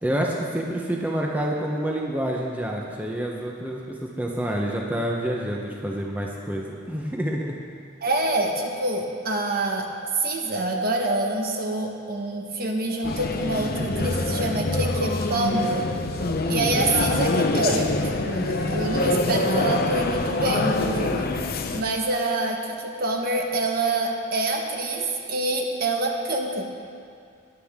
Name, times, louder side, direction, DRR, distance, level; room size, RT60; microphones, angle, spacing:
voice 1, 0.0-7.6, right 1 dB, 10° right, -1 dB, 0.8 m, -28 dB
voice 2, 8.0-9.9 10.2-15.9 16.5-17.9 18.2-21.3 21.7-26.6, right 2 dB, 45° right, 2 dB, 1.3 m, -26 dB
sound 1, 13.0-21.8, left 2 dB, 50° left, 0.7 m, -25 dB
19.0 x 11.5 x 3.7 m, 2.3 s
head